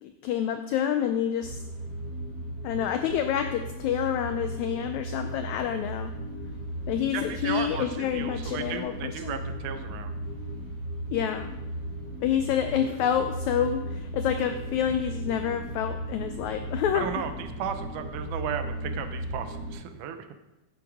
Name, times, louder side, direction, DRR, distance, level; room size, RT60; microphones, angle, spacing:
voice 1, 0.0-1.6 2.6-6.1 6.9-9.4 11.1-11.5 12.2-17.1, left 9 dB, 85° left, 8 dB, 1.6 m, -28 dB
sound 1, 1.4-19.7, right 1 dB, 25° right, 4.8 m, -36 dB
voice 2, 7.1-10.1 16.9-20.3, right 8 dB, 75° right, 8 dB, 2.1 m, -35 dB
10.5 x 8.6 x 4.7 m, 0.98 s
omnidirectional pair, 3.9 m